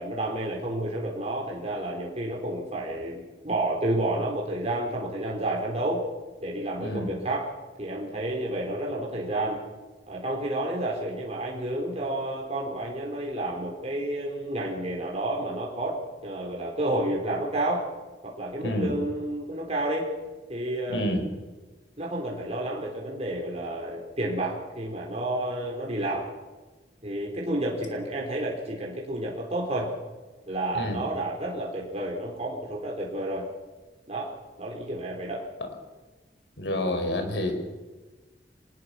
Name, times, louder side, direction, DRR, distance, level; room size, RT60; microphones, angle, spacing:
voice 1, 0.0-6.1 6.4-7.5 7.8-9.6 10.1-16.0 16.2-17.9 18.2-20.1 20.5-21.0 22.0-26.3 27.0-29.9 30.5-33.5 34.1-34.3 34.6-35.5, right 1 dB, 35° right, -2 dB, 4.2 m, -30 dB
voice 2, 6.8-7.1 18.6-18.9 20.9-21.3 30.7-31.0 36.6-37.5, left 1 dB, 85° left, 5 dB, 5.1 m, -28 dB
25.5 x 20.5 x 6.0 m, 1.2 s
head